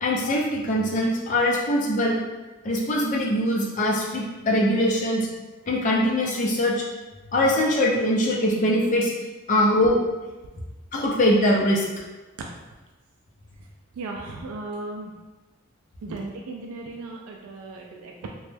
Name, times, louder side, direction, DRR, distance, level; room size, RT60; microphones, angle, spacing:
voice 1, 0.0-2.2 2.6-5.3 5.7-6.8 7.3-9.1 9.5-10.0 10.9-11.8, left 1 dB, 35° left, -3 dB, 0.4 m, -22 dB
voice 2, 14.0-15.2 16.0-18.3, right 3 dB, 85° right, 0 dB, 0.3 m, -36 dB
3.0 x 2.2 x 3.2 m, 1.2 s
head